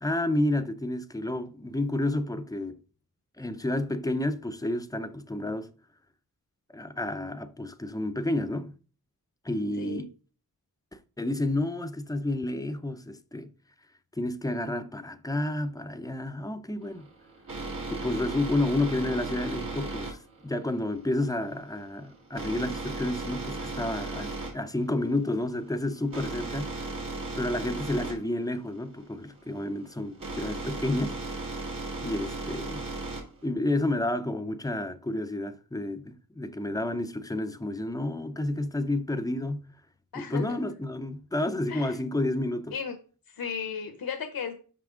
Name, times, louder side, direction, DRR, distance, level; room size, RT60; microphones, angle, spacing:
voice 1, 0.0-2.7 3.4-5.7 6.7-8.7 9.4-10.1 10.9-13.5 14.2-17.1 17.9-20.2 20.4-26.9 27.3-31.2 32.0-32.8 33.4-39.7 40.1-42.7, left 1 dB, 10° left, 0.6 m, -30 dB
voice 2, 9.8-10.1 40.1-40.6 41.7-41.9 42.7-42.9 43.4-44.5, left 6 dB, 75° left, 0.9 m, -35 dB
sound 1, 16.8-33.4, right 2 dB, 65° right, 2.3 m, -36 dB
5.9 x 5.7 x 3.7 m
wide cardioid pair, 100°, 36 cm